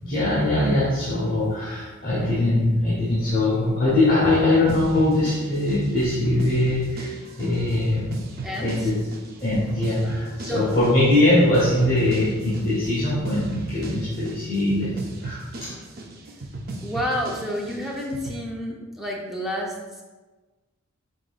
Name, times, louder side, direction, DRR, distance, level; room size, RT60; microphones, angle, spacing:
voice 1, 0.0-8.1 8.6-9.0 9.4-15.7, left 1 dB, 45° left, -9 dB, 1.0 m, -22 dB
sound 1, 4.7-18.4, right 2 dB, 45° right, 0.5 m, -36 dB
voice 2, 8.4-8.9 10.4-10.7 16.8-20.0, equal, ahead, -3 dB, 0.6 m, -30 dB
5.1 x 3.8 x 2.4 m, 1.3 s
head